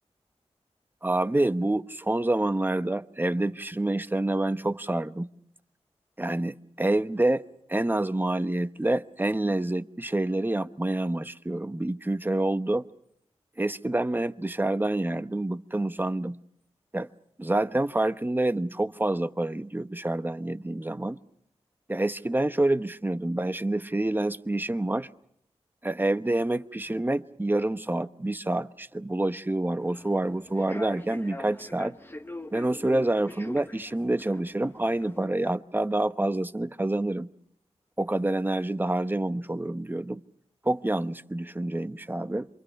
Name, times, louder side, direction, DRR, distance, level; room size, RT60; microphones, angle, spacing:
voice 1, 1.0-5.3 6.2-7.4 7.7-12.9 13.6-16.4 16.9-17.1 17.4-21.2 21.9-25.1 25.8-32.0 32.5-37.3 38.0-40.2 40.6-42.5, right 1 dB, 15° right, 1.0 m, -27 dB
Human voice / Subway metro underground, 29.8-35.3, left 1 dB, 20° left, 1.2 m, -43 dB
27.5 x 23.5 x 5.9 m
cardioid pair, 50°, 11 cm